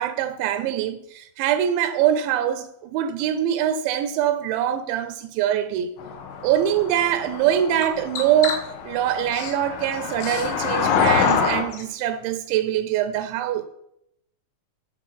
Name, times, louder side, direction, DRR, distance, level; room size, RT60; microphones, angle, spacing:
voice 1, 0.0-5.9 6.4-13.6, right 10 dB, 80° right, 2.7 m, -23 dB
sound 1, 6.0-11.6, left 6 dB, 90° left, 3.7 m, -26 dB
Bird vocalization bird call bird song, 6.3-11.9, left 5 dB, 70° left, 3.9 m, -38 dB
9.1 x 6.4 x 5.9 m
omnidirectional pair, 5.4 m